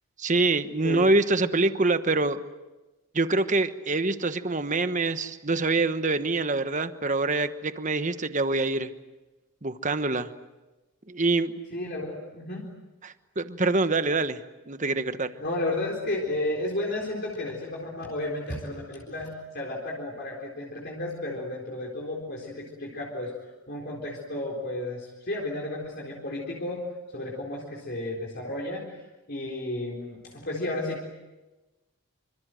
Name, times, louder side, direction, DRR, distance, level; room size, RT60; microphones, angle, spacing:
voice 1, 0.2-2.4 3.1-8.9 9.6-10.3 11.1-11.6 13.0-14.4 14.7-15.3, right 3 dB, 35° right, 10 dB, 1.2 m, -25 dB
voice 2, 11.7-12.7 15.4-26.8 27.1-29.0 29.3-31.1, left 1 dB, 45° left, -2 dB, 4.1 m, -33 dB
27.0 x 26.0 x 7.8 m, 1.1 s
head